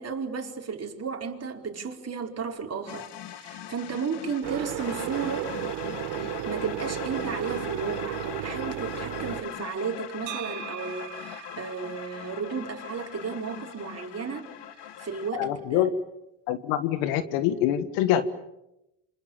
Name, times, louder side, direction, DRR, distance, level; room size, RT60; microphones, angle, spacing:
voice 1, 0.0-5.5 6.2-15.8, right 5 dB, 30° right, 2 dB, 4.8 m, -34 dB
sound 1, 2.9-15.3, left 11 dB, 55° left, 1.9 m, -40 dB
sound 2, 4.4-9.4, right 14 dB, 60° right, 1.8 m, -33 dB
sound 3, 10.3-14.3, right 16 dB, 85° right, 2.1 m, -43 dB
voice 2, 15.3-15.9 16.5-18.2, left 12 dB, 75° left, 12 dB, 1.8 m, -25 dB
28.0 x 26.0 x 7.3 m, 0.90 s
supercardioid pair, 85°, 50 cm